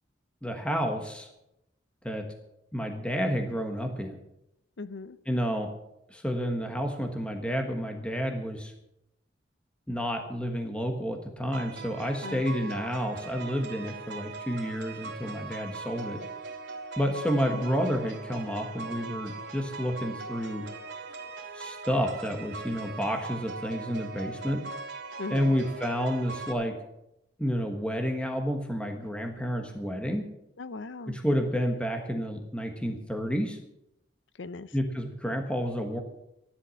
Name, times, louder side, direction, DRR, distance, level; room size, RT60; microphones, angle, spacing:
voice 1, 0.4-1.3 2.0-2.3 2.7-4.2 5.3-5.7 6.1-8.7 9.9-16.2 17.0-20.7 21.5-24.6 25.3-26.8 27.4-30.2 31.1-33.6 34.7-36.0, equal, 5° left, 4 dB, 1.3 m, -30 dB
voice 2, 4.8-5.2 12.2-12.7 17.3-17.7 25.2-25.6 30.6-31.2 34.4-34.7, left 3 dB, 85° left, 15 dB, 0.7 m, -39 dB
sound 1, 11.5-26.5, right 4 dB, 90° right, 2.7 m, -40 dB
13.5 x 11.0 x 6.4 m, 0.85 s
head